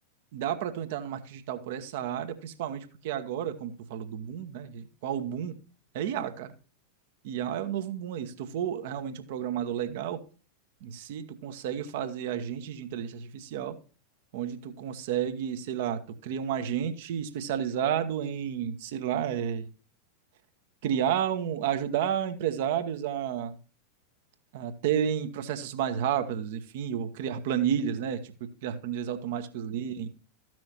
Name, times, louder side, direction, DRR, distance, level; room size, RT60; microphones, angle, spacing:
voice 1, 0.3-5.6 5.9-6.5 7.2-10.2 10.8-13.8 14.3-19.7 20.8-23.6 24.5-30.1, right 9 dB, 50° right, 1.0 m, -31 dB
14.0 x 6.1 x 2.9 m
figure-of-eight pair, 90°, 0 cm